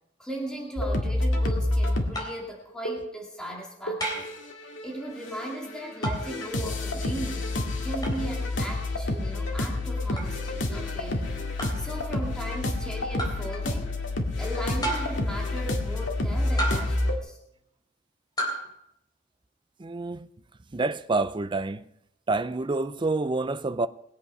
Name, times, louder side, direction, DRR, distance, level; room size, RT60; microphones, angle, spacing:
voice 1, 0.2-4.3 4.5-7.5 7.8-11.3 11.8-14.0 14.4-17.4, right 1 dB, 5° left, 2.3 m, -37 dB
sound 1, 0.8-2.1 2.8-3.1 3.9-4.9 5.1-17.2, left 2 dB, 80° left, 2.1 m, -29 dB
sound 2, 2.1-2.5 4.0-4.4 6.0-6.3 8.0-8.2 10.2-10.3 11.6-11.9 13.2-13.5 14.8-15.3 16.6-17.0 18.4-18.7, right 1 dB, 20° left, 3.5 m, -31 dB
voice 2, 19.8-20.3 20.7-21.9 22.3-23.9, right 3 dB, 25° right, 0.5 m, -27 dB
21.0 x 8.4 x 5.5 m
head